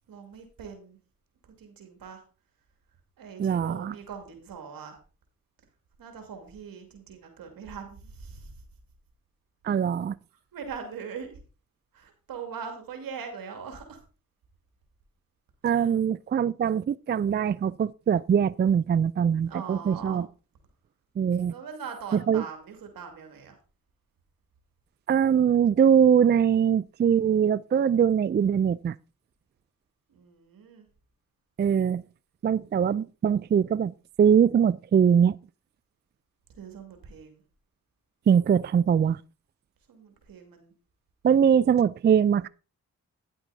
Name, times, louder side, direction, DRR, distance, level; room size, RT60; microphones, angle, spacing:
voice 1, 0.1-1.0 1.6-2.2 3.2-5.0 6.0-8.5 10.5-11.4 11.9-14.0 15.7-15.9 19.4-20.2 21.5-23.6 30.1-30.9 36.5-37.4 39.9-40.7, right 6 dB, 85° right, 2.5 m, -41 dB
voice 2, 3.4-3.9 9.6-10.1 15.6-20.3 21.2-21.5 22.3-22.4 25.1-28.9 31.6-32.0 32.4-33.9 34.2-35.4 38.3-39.2 41.2-42.5, right 8 dB, 30° right, 0.4 m, -22 dB
10.0 x 8.0 x 4.0 m
supercardioid pair, 45°, 34 cm